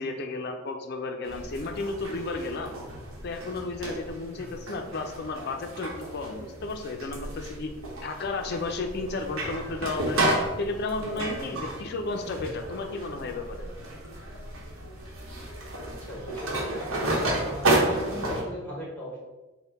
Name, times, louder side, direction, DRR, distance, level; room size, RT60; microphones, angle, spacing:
voice 1, 0.0-2.8 3.2-7.7 8.0-10.2 10.6-13.6, left 3 dB, 50° left, 5 dB, 0.4 m, -33 dB
sound 1, 1.2-18.4, right 1 dB, 80° right, 0.9 m, -32 dB
voice 2, 4.3-4.8 15.8-16.8 17.4-19.2, left 1 dB, 10° left, -3 dB, 0.9 m, -39 dB
4.2 x 2.1 x 3.9 m, 1.2 s
head